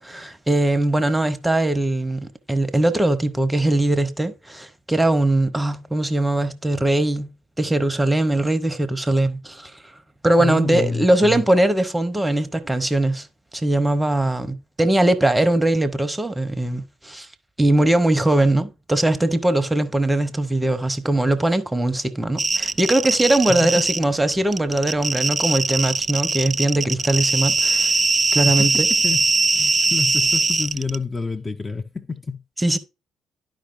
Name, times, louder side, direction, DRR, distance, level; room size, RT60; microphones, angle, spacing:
voice 1, 0.0-7.3 7.6-9.8 10.2-13.3 13.5-17.3 17.6-27.9 28.3-28.9 32.6-32.8, right 1 dB, 10° right, 0.9 m, -20 dB
voice 2, 10.4-11.4 23.5-23.8 28.5-29.2 29.5-32.4, left 4 dB, 20° left, 0.8 m, -28 dB
sound 1, 22.4-24.0 24.3-31.0, right 3 dB, 30° right, 0.5 m, -21 dB
11.5 x 5.1 x 2.6 m
figure-of-eight pair, 45°, 0 cm